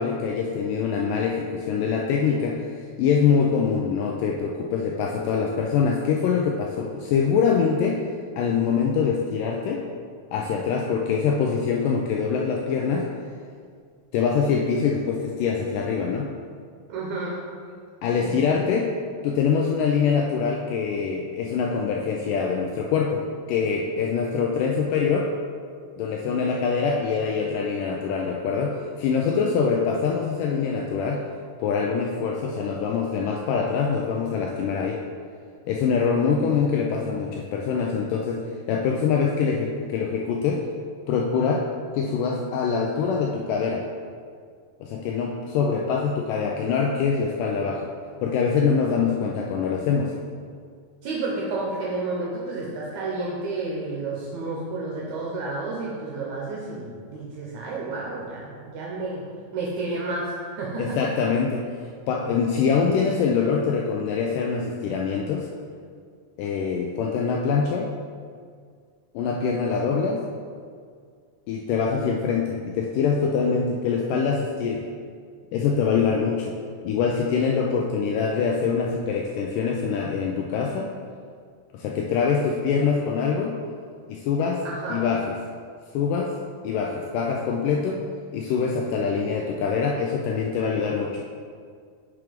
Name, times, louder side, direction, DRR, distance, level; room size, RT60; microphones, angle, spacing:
voice 1, 0.0-2.7 3.0-8.0 8.4-9.8 10.3-13.1 14.1-16.3 18.0-18.9 19.2-23.2 23.5-25.3 26.0-31.2 31.6-35.0 35.7-40.6 41.1-41.7 41.9-43.8 44.8-47.9 48.2-50.2 60.8-61.7 62.1-65.5 66.4-67.9 69.1-70.2 71.5-74.8 75.5-76.5 76.8-80.9 81.7-83.6 84.1-84.6 84.9-85.2 85.9-86.3 86.6-88.0 88.3-91.2, left 6 dB, 85° left, 0 dB, 1.9 m, -24 dB
voice 2, 16.9-17.4 18.2-18.4 51.0-59.2 59.5-61.0 84.6-85.0, right 3 dB, 75° right, -3 dB, 1.8 m, -31 dB
6.0 x 4.7 x 5.0 m, 2.1 s
omnidirectional pair, 4.2 m